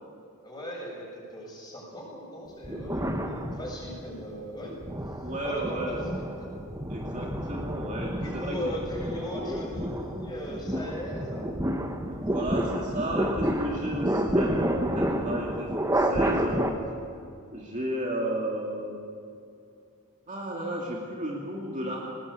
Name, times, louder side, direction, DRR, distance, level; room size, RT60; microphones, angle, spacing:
voice 1, 0.4-4.7 5.4-6.6 8.1-11.5, equal, 20° left, -3 dB, 7.5 m, -38 dB
sound 1, 2.6-4.1 4.6-16.7, right 1 dB, 15° right, 1.4 m, -30 dB
voice 2, 5.2-6.0 6.9-8.6 12.1-16.7 17.5-19.0 20.3-22.0, right 1 dB, 35° right, -2 dB, 2.5 m, -33 dB
21.0 x 19.0 x 8.5 m, 2.5 s
head